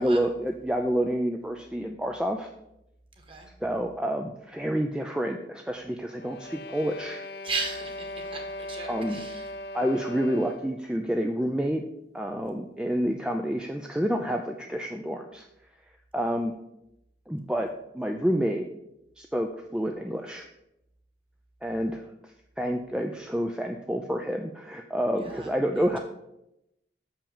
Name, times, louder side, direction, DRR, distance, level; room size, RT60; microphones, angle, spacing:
voice 1, 0.0-2.5 3.6-7.2 8.9-9.2 9.7-11.8 12.1-15.5 16.1-16.5 17.3-17.7 17.9-18.6 19.2-20.5 21.6-22.0 22.6-26.0, equal, 5° right, 3 dB, 0.4 m, -28 dB
voice 2, 3.2-3.5 7.4-9.5 25.2-25.5 25.8-25.9, right 3 dB, 30° right, 2 dB, 1.6 m, -36 dB
sound 1, 6.1-10.8, left 1 dB, 65° left, 0.6 m, -39 dB
6.8 x 5.8 x 7.1 m, 0.85 s
head